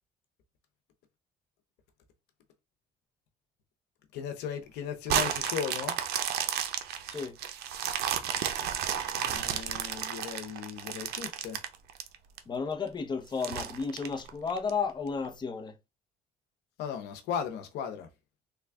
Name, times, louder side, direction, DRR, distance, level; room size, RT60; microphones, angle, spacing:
voice 1, 4.1-6.0 9.2-11.6 16.8-18.1, left 8 dB, 85° left, 0.8 m, -36 dB
sound 1, 5.1-12.4 12.9-13.0 13.4-14.7 15.2-15.3, right 9 dB, 75° right, 0.6 m, -32 dB
voice 2, 7.1-7.4 12.5-15.8, left 5 dB, 25° left, 0.7 m, -33 dB
3.4 x 2.3 x 3.4 m
cardioid pair, 110°, 17 cm